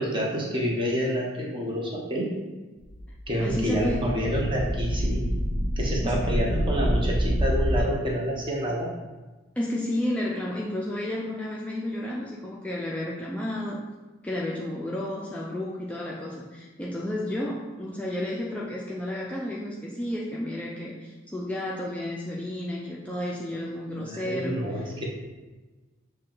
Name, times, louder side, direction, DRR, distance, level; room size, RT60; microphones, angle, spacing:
voice 1, 0.0-2.3 3.3-5.2 5.8-8.9 24.0-25.1, equal, 25° right, -2 dB, 0.8 m, -28 dB
sound 1, 2.8-7.8, equal, 80° right, 0.6 m, -27 dB
voice 2, 3.4-4.1 6.0-6.3 9.6-13.8 14.2-24.9, left 1 dB, 5° left, -4 dB, 0.3 m, -32 dB
6.4 x 2.2 x 3.8 m, 1.2 s
head